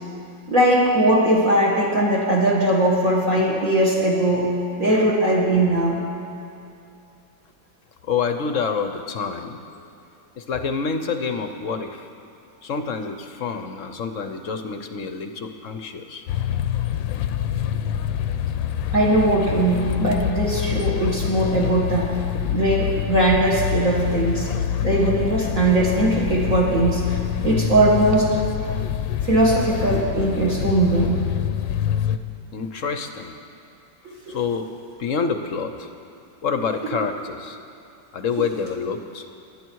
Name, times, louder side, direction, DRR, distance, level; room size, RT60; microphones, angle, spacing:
voice 1, 0.5-4.5 4.8-6.1 18.9-22.1 22.5-24.5 24.8-27.0 27.4-28.3 29.2-31.2 34.1-34.4, right 1 dB, 45° right, -4 dB, 2.3 m, -20 dB
voice 2, 8.0-9.6 10.4-12.1 12.6-16.2 32.5-33.4 34.3-34.7 35.0-35.9 36.4-37.6 38.1-39.3, left 5 dB, 55° left, 7 dB, 0.9 m, -27 dB
St James Park - Changing of the guard at Buckingham Palace, 16.3-32.2, left 10 dB, 90° left, 1.4 m, -26 dB
26.0 x 11.0 x 4.7 m, 2.5 s
omnidirectional pair, 2.0 m